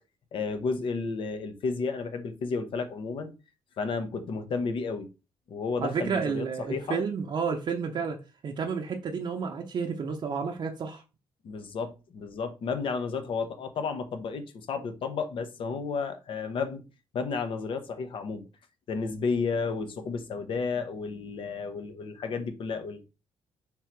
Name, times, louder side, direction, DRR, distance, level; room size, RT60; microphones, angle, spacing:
voice 1, 0.3-3.3 3.8-5.1 5.5-7.0 11.4-16.8 17.1-18.4 18.9-23.0, left 4 dB, 60° left, 0.8 m, -32 dB
voice 2, 5.8-8.2 8.4-11.0, right 5 dB, 55° right, 0.7 m, -31 dB
3.7 x 2.9 x 4.5 m
cardioid pair, 90°, 10 cm